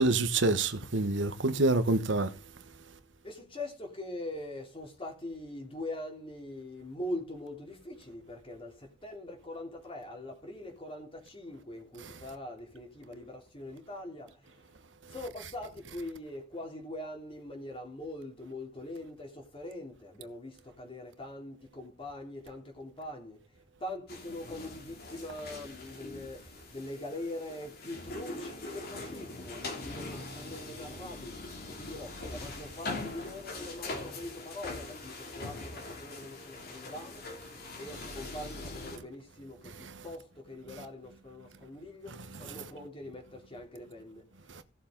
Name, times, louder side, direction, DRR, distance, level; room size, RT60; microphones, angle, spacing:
voice 1, 0.0-2.3 39.8-39.9, right 2 dB, 80° right, 1.2 m, -27 dB
voice 2, 3.2-8.7 9.0-14.3 15.1-19.3 19.5-20.5 20.8-23.4 23.8-26.4 26.7-31.4 31.8-37.2 37.8-39.6 40.0-40.2 40.5-42.1 42.4-44.2, left 1 dB, 30° left, 3.4 m, -42 dB
sound 1, 24.1-39.0, left 2 dB, 55° left, 3.1 m, -42 dB
16.5 x 7.3 x 3.9 m
head